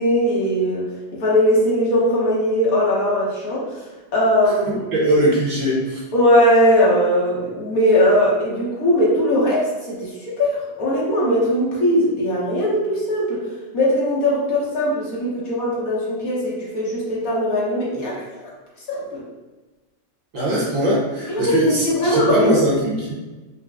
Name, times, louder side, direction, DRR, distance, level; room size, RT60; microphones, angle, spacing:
voice 1, 0.0-4.8 6.1-13.4 13.7-18.4 18.9-19.2 21.3-22.5, equal, 60° left, -5 dB, 1.3 m, -20 dB
voice 2, 4.9-6.0 20.3-23.1, right 1 dB, 55° right, -5 dB, 1.2 m, -20 dB
4.8 x 2.1 x 3.4 m, 1.2 s
omnidirectional pair, 1.9 m